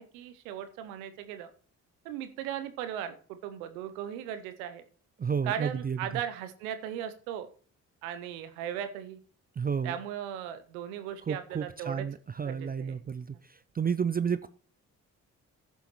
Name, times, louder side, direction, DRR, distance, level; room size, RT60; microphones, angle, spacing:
voice 1, 0.0-1.5 2.0-4.8 5.4-7.5 8.0-9.2 9.8-12.1 12.4-13.0, right 10 dB, 85° right, 10 dB, 0.7 m, -37 dB
voice 2, 5.2-6.0 9.6-10.0 11.3-14.5, right 6 dB, 25° right, 14 dB, 0.4 m, -31 dB
15.0 x 6.9 x 3.0 m, 0.42 s
hypercardioid pair, 40°, 41 cm